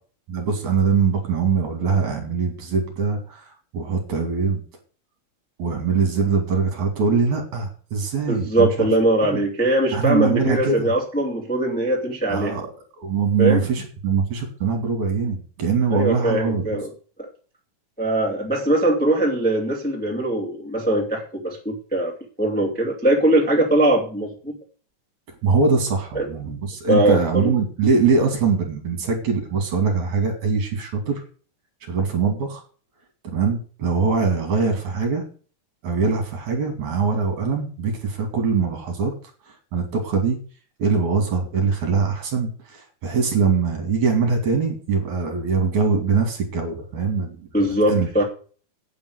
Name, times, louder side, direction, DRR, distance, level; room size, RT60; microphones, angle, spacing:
voice 1, 0.3-4.6 5.6-8.9 9.2-9.4 9.9-10.9 12.3-12.7 13.0-16.7 25.4-31.2 31.9-32.6 33.2-35.2 35.8-39.1 39.7-40.4 40.8-48.1, right 5 dB, 50° right, 3 dB, 3.5 m, -22 dB
voice 2, 8.3-12.6 13.4-13.6 15.9-16.9 17.2-17.3 18.0-24.6 26.1-26.3 26.9-27.5 47.5-48.2, right 1 dB, 5° left, -1 dB, 1.8 m, -21 dB
9.3 x 7.2 x 7.9 m, 0.40 s
omnidirectional pair, 4.6 m